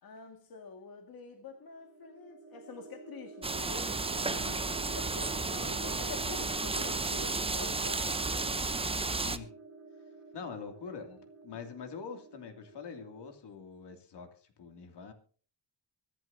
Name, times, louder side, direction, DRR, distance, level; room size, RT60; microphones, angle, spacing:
voice 1, 0.0-3.9 4.2-8.1 10.3-10.5, left 4 dB, 55° left, 4 dB, 2.0 m, -47 dB
sound 1, 1.5-13.4, right 3 dB, 35° right, 1.9 m, -49 dB
sound 2, 3.4-9.4, right 3 dB, 15° right, 0.7 m, -33 dB
voice 2, 9.1-9.5 10.3-14.3 14.6-15.1, left 6 dB, 75° left, 5 dB, 2.8 m, -44 dB
24.0 x 11.0 x 2.8 m, 0.43 s
wide cardioid pair, 145°, 41 cm